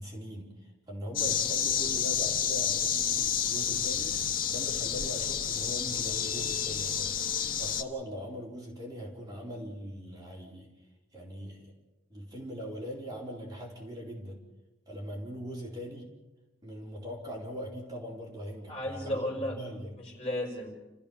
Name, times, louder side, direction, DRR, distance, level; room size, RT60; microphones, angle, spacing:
voice 1, 0.0-4.2 4.5-10.7 11.1-11.7 12.1-14.4 14.9-16.1 16.6-19.3 19.5-19.9, equal, 20° right, -3 dB, 4.1 m, -41 dB
sound 1, 1.2-7.8, left 8 dB, 45° left, 1.2 m, -30 dB
voice 2, 18.7-19.6 20.0-20.8, left 1 dB, 30° left, 0 dB, 5.4 m, -34 dB
30.0 x 15.0 x 7.1 m, 1.0 s
head